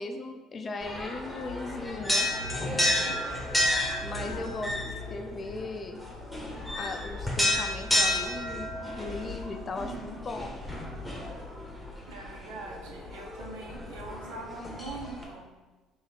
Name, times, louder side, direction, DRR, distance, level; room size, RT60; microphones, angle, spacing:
voice 1, 0.0-2.3 4.0-6.0 6.8-10.5, left 3 dB, 35° left, 6 dB, 0.5 m, -38 dB
sound 1, 0.8-15.2, left 1 dB, 5° left, 1.2 m, -32 dB
voice 2, 2.6-3.2 12.1-15.5, right 2 dB, 75° right, -1 dB, 0.8 m, -43 dB
3.6 x 3.1 x 4.4 m, 1.2 s
hypercardioid pair, 55°, 0 cm